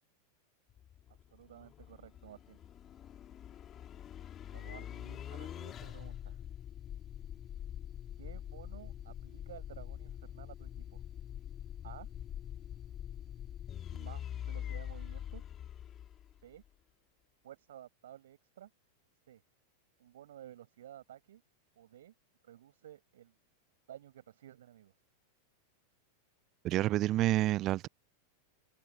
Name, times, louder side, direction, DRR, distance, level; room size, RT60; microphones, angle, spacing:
sound 1, 0.7-16.7, left 10 dB, 25° left, 4.3 m, -44 dB
voice 1, 1.1-2.6 4.5-6.4 8.2-11.0 11.8-12.1 13.9-15.4 16.4-16.6 17.4-18.7 19.3-19.4 20.0-21.4 21.8-22.1 22.4-23.3 23.9-24.9, right 11 dB, 60° right, 7.7 m, -53 dB
voice 2, 26.6-27.9, right 15 dB, 35° right, 0.4 m, -28 dB
figure-of-eight pair, 90°, 0 cm